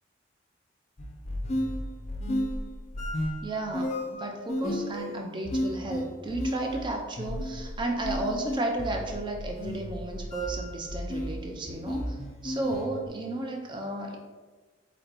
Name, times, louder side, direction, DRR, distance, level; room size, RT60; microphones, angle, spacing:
sound 1, 1.0-13.1, equal, 30° left, 0.5 m, -33 dB
voice 1, 3.4-14.2, right 2 dB, 25° right, 2 dB, 0.5 m, -33 dB
4.4 x 2.8 x 4.0 m, 1.3 s
head